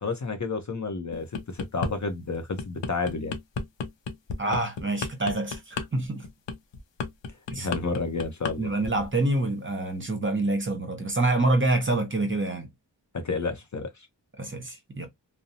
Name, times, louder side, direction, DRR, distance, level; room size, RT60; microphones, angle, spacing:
voice 1, 0.0-3.3 7.6-8.7 13.1-13.9, left 4 dB, 45° left, 0.6 m, -30 dB
sound 1, 1.1-1.9 2.3-8.6 8.8-9.1, left 4 dB, 85° left, 0.6 m, -33 dB
voice 2, 4.4-6.3 7.5-7.7 8.6-12.7 14.4-15.1, right 2 dB, 30° right, 0.8 m, -26 dB
2.6 x 2.0 x 2.6 m
wide cardioid pair, 60°, 43 cm